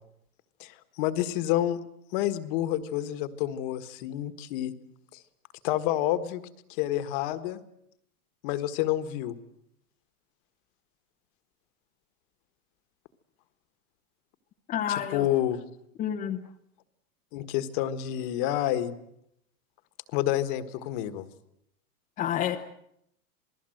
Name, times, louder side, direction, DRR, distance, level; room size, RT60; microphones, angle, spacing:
voice 1, 0.6-1.8 2.1-4.7 5.6-6.4 6.7-7.6 8.4-9.4 15.1-15.6 17.3-19.0 20.1-21.2, left 13 dB, 35° left, 12 dB, 1.5 m, -28 dB
voice 2, 14.7-15.3 16.0-16.4 22.2-22.6, left 10 dB, 15° left, 2 dB, 0.9 m, -29 dB
27.5 x 19.5 x 7.8 m, 0.75 s
hypercardioid pair, 155°, 45 cm